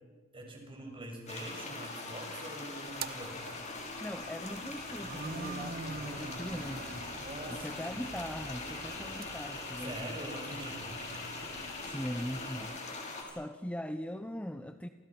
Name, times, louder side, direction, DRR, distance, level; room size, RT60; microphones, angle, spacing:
voice 1, 0.3-3.4 5.5-6.1 7.2-8.3 9.8-11.0, right 1 dB, 25° right, 2 dB, 6.7 m, -45 dB
sound 1, 1.3-13.2, left 3 dB, 35° left, 5.9 m, -42 dB
sound 2, 2.8-12.8, right 4 dB, 50° right, 0.9 m, -46 dB
voice 2, 4.0-7.1 7.5-10.2 11.8-13.0 13.3-14.9, equal, 5° left, 8 dB, 0.8 m, -40 dB
sound 3, 4.9-13.4, left 6 dB, 55° left, 4.0 m, -51 dB
29.0 x 28.5 x 6.1 m, 1.4 s
head